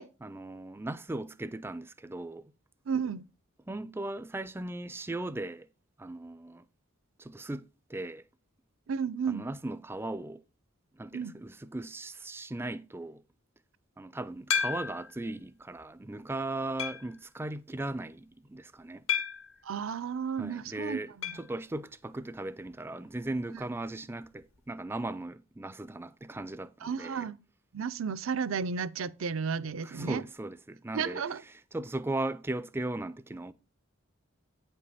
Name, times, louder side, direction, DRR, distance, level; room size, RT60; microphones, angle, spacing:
voice 1, 0.2-2.5 3.7-5.7 6.0-6.6 7.2-8.2 9.3-10.4 11.0-13.2 14.0-19.1 20.4-27.3 29.8-31.2 31.7-33.5, right 2 dB, 10° right, 0.4 m, -37 dB
voice 2, 2.9-3.3 8.9-9.4 11.1-11.3 19.6-21.4 23.5-23.6 26.8-27.4 27.7-30.2 30.9-31.4, right 6 dB, 70° right, 0.5 m, -33 dB
sound 1, 14.5-15.2 15.8-15.9 16.8-17.2 19.1-19.6 21.2-21.5 21.8-21.9 22.1-22.2 24.2-24.3, left 7 dB, 70° left, 0.8 m, -32 dB
9.0 x 5.4 x 4.1 m
head